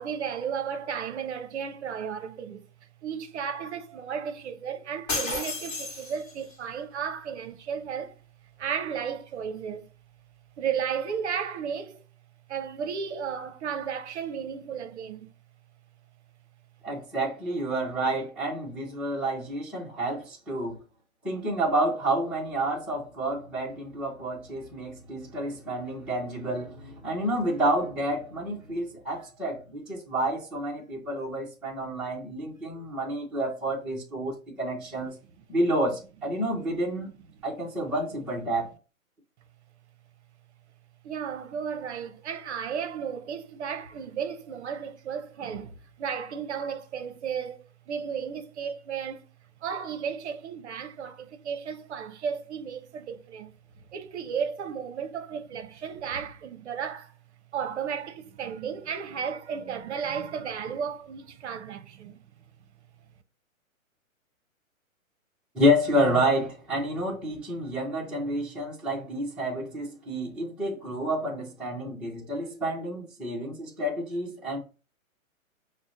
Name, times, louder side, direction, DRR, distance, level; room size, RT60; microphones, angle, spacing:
voice 1, 0.0-2.6 3.0-8.1 8.6-9.9 10.6-12.0 12.5-15.3 41.0-49.2 49.6-57.1 57.5-62.2, right 7 dB, 55° right, 0.6 m, -34 dB
sound 1, 5.1-6.5, left 2 dB, 30° left, 1.2 m, -32 dB
voice 2, 16.8-20.8 21.2-35.1 35.5-37.1 37.4-38.7 65.5-74.6, right 1 dB, ahead, 0.5 m, -29 dB
5.9 x 2.1 x 2.6 m
hypercardioid pair, 125°, 42 cm